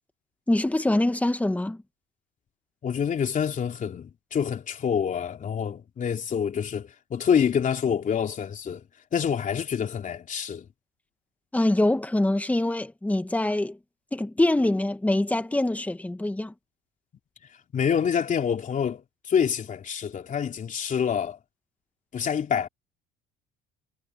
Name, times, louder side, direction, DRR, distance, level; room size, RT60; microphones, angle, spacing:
voice 1, 0.5-1.8 11.5-13.8 14.1-16.5, left 1 dB, 5° left, 1.8 m, -24 dB
voice 2, 2.8-10.7 17.5-21.4 22.1-22.7, left 7 dB, 40° left, 3.3 m, -27 dB
cardioid pair, 100°, 20 cm